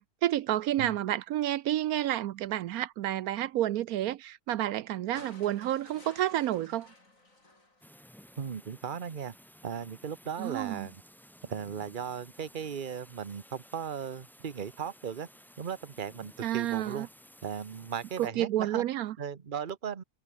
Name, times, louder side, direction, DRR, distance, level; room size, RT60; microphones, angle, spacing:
voice 1, 0.0-6.9 10.4-10.9 16.4-17.1 18.2-19.1, right 13 dB, 80° right, 1.1 m, -30 dB
sound 1, 5.1-8.4 9.8-9.9, left 2 dB, 65° left, 6.3 m, -54 dB
sound 2, 7.8-18.3, equal, ahead, 3.2 m, -56 dB
voice 2, 8.4-9.3 9.6-11.0 11.4-15.3 15.6-17.1 17.4-18.8 19.2-20.0, right 7 dB, 35° right, 1.2 m, -37 dB
omnidirectional pair, 1.5 m